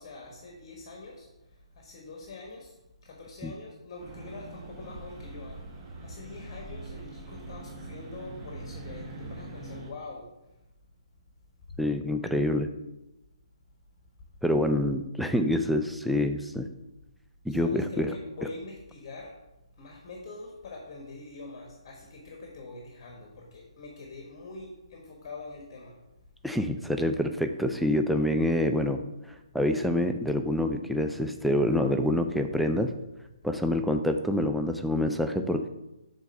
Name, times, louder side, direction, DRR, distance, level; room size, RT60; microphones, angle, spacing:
voice 1, 0.0-2.8 3.0-10.5 11.7-11.8 17.5-19.4 19.8-26.0, left 3 dB, 40° left, 0 dB, 1.4 m, -44 dB
sound 1, 4.0-9.9, right 2 dB, 25° right, 1.2 m, -42 dB
voice 2, 11.8-12.7 14.4-16.7 17.5-18.1 26.4-29.0 29.3-32.9 33.4-35.7, left 1 dB, ahead, 5 dB, 0.4 m, -26 dB
6.3 x 4.0 x 5.2 m, 0.94 s
figure-of-eight pair, 140°, 3 cm